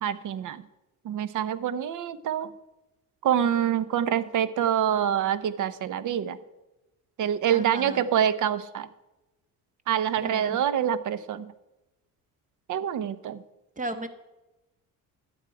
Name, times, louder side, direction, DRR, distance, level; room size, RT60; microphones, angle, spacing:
voice 1, 0.0-0.6 1.0-2.5 3.2-6.4 7.2-8.9 9.9-11.5 12.7-13.4, right 9 dB, 55° right, 15 dB, 0.8 m, -26 dB
voice 2, 7.5-8.1 10.2-10.6 13.8-14.1, right 2 dB, 20° right, 8 dB, 1.3 m, -35 dB
11.5 x 8.9 x 4.8 m, 1.0 s
cardioid pair, 105°, 36 cm